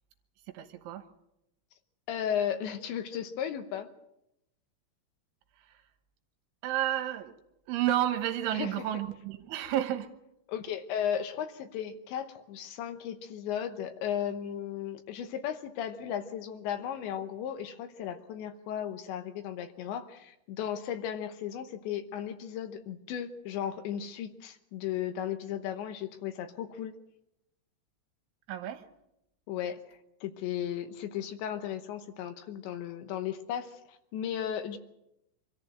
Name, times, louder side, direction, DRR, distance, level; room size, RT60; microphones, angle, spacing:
voice 1, 0.5-1.1 5.7-5.8 6.6-7.3 7.7-10.1 28.5-28.8, right 12 dB, 75° right, 7 dB, 3.5 m, -31 dB
voice 2, 2.1-3.9 8.5-8.7 10.5-26.9 29.5-34.8, left 9 dB, 75° left, 8 dB, 3.1 m, -35 dB
25.0 x 14.5 x 7.8 m, 0.85 s
omnidirectional pair, 5.7 m